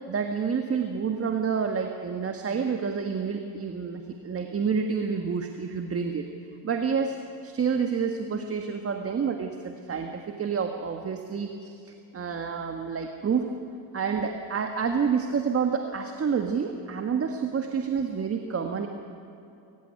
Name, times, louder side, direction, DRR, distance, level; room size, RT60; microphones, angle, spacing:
voice 1, 0.1-6.3 6.6-7.2 7.4-13.5 13.9-18.9, right 6 dB, 30° right, 5 dB, 1.6 m, -28 dB
23.5 x 16.0 x 9.8 m, 2.7 s
cardioid pair, 110°, 44 cm